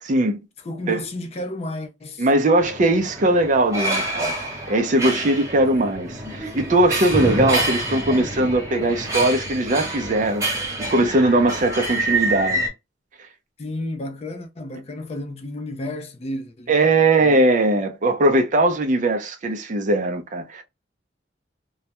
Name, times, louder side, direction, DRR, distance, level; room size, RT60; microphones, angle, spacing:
voice 1, 0.1-0.4 0.9-1.0 2.2-4.3 4.7-12.6 16.7-20.6, right 2 dB, 40° right, 0.5 m, -20 dB
voice 2, 0.6-2.3 13.6-17.4, left 1 dB, 35° left, 0.4 m, -32 dB
sound 1, 2.6-12.7, right 1 dB, 15° right, 0.8 m, -27 dB
2.3 x 2.1 x 2.8 m
head